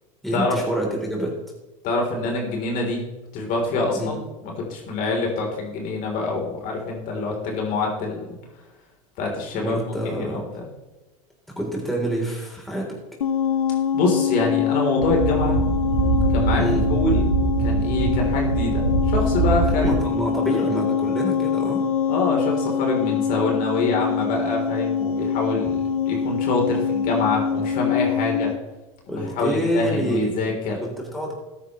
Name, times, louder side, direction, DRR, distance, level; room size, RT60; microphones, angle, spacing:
voice 1, 0.2-1.3 3.9-4.2 9.5-10.4 11.6-12.9 16.6-16.8 19.8-21.8 29.1-30.5 30.8-31.4, right 1 dB, ahead, -2 dB, 3.6 m, -27 dB
voice 2, 1.8-3.0 3.3-4.2 4.6-8.4 9.2-9.8 10.0-10.6 13.9-15.6 16.3-16.6 16.9-17.3 17.6-20.8 22.1-28.5 29.1-30.8, left 3 dB, 50° left, 0 dB, 3.6 m, -25 dB
sound 1, 13.2-28.6, left 7 dB, 85° left, 0.7 m, -24 dB
sound 2, 15.0-20.0, right 4 dB, 85° right, 4.0 m, -23 dB
14.0 x 9.8 x 3.2 m, 1.1 s
hypercardioid pair, 95°, 18 cm